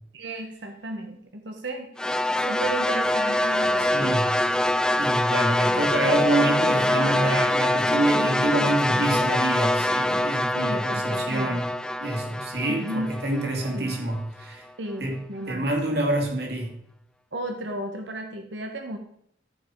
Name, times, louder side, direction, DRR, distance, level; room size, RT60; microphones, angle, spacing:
voice 1, 0.1-1.9 2.4-4.3 6.7-7.5 8.1-9.0 10.5-11.6 12.7-13.1 13.7-13.9 14.8-15.7 17.3-19.0, right 1 dB, 80° right, 4 dB, 1.2 m, -35 dB
sound 1, 2.0-14.2, left 1 dB, 5° left, 0.3 m, -24 dB
voice 2, 3.8-4.4 5.0-11.7 12.0-14.6 15.0-15.2 15.5-16.7, right 1 dB, 60° right, 1 dB, 2.7 m, -27 dB
14.5 x 5.5 x 4.6 m, 0.71 s
head